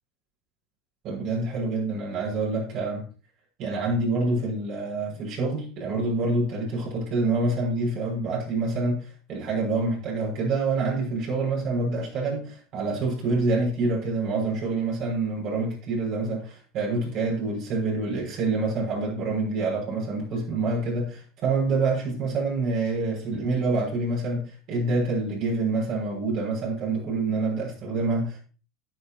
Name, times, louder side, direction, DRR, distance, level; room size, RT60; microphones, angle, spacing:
voice 1, 1.0-3.1 3.6-28.4, right 3 dB, 55° right, 6.2 m, -27 dB
12.5 x 9.5 x 3.0 m
hypercardioid pair, 85°, 0 cm